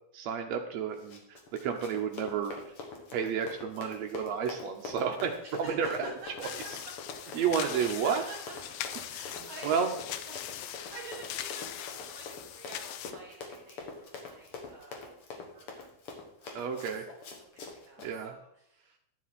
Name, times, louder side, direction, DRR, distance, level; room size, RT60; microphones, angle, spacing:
voice 1, 0.1-2.7 3.1-5.3 5.7-6.1 6.4-6.5 7.3-8.2 9.6-9.9 16.5-17.0 18.0-18.4, right 7 dB, 85° right, 4 dB, 1.5 m, -31 dB
Run, 0.9-18.1, left 4 dB, 50° left, 1.9 m, -45 dB
voice 2, 5.4-5.9 6.4-6.5 7.1-8.5 9.1-15.9 16.4-17.3 17.5-19.0, right 3 dB, 45° right, -6 dB, 3.6 m, -50 dB
sound 1, 6.4-13.1, left 11 dB, 85° left, 2.4 m, -41 dB
12.0 x 7.5 x 4.2 m, 0.72 s
omnidirectional pair, 4.2 m